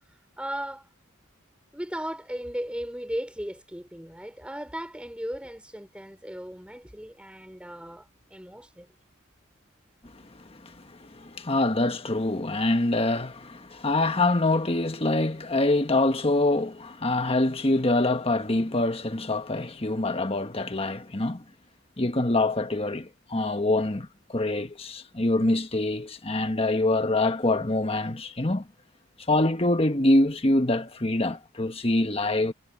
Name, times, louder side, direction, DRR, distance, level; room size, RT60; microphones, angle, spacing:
voice 1, 0.4-0.9 1.7-8.9, equal, 5° right, 4.8 m, -36 dB
voice 2, 10.4-10.7 11.0-21.4 22.0-28.7 29.3-32.5, left 2 dB, 30° left, 1.3 m, -25 dB
head